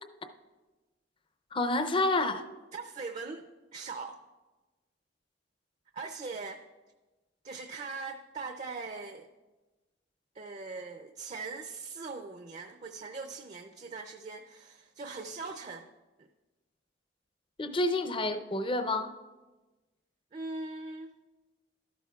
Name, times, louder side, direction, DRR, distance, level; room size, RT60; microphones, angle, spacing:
voice 1, 1.5-2.4 17.6-19.1, left 2 dB, 25° left, 9 dB, 0.5 m, -29 dB
voice 2, 2.7-3.5 3.7-4.2 5.9-6.6 7.4-9.3 10.3-15.9 16.2-16.3 20.3-21.1, right 4 dB, 35° right, 5 dB, 0.5 m, -41 dB
13.0 x 12.0 x 2.3 m, 1.2 s
head